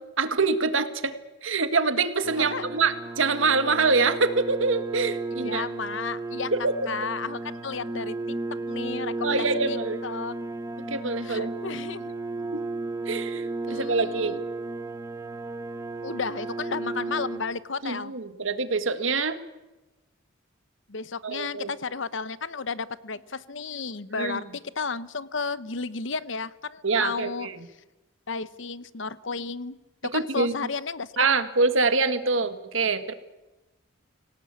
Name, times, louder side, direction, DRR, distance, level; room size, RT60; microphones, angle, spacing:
voice 1, 0.2-1.1 1.4-5.6 6.5-6.9 9.2-10.0 10.9-11.5 12.5-12.6 13.0-14.4 17.8-19.4 21.2-21.7 24.2-24.4 26.8-27.6 30.1-30.5 31.2-33.1, right 4 dB, 75° right, 9 dB, 1.9 m, -25 dB
sound 1, 2.2-17.4, right 3 dB, 15° right, 1.6 m, -34 dB
voice 2, 5.4-6.5 6.9-8.2 8.7-9.8 10.0-10.3 11.2-12.1 13.7-14.4 16.0-18.1 20.9-27.5 28.3-29.8 30.1-31.3, left 4 dB, 70° left, 16 dB, 0.9 m, -33 dB
26.0 x 17.5 x 8.4 m, 1.1 s
head